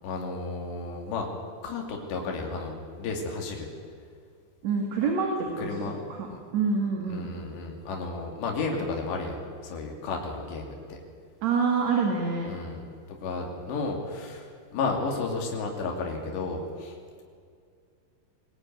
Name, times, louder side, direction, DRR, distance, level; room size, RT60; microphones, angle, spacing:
voice 1, 0.0-1.3 1.6-3.7 5.6-6.0 6.3-6.4 7.1-11.0 12.5-12.8 13.2-16.9, left 3 dB, 80° left, 1 dB, 4.9 m, -33 dB
voice 2, 4.6-7.3 11.4-12.5, right 5 dB, 50° right, 1 dB, 2.9 m, -27 dB
23.0 x 18.0 x 9.4 m, 2.2 s
omnidirectional pair, 4.8 m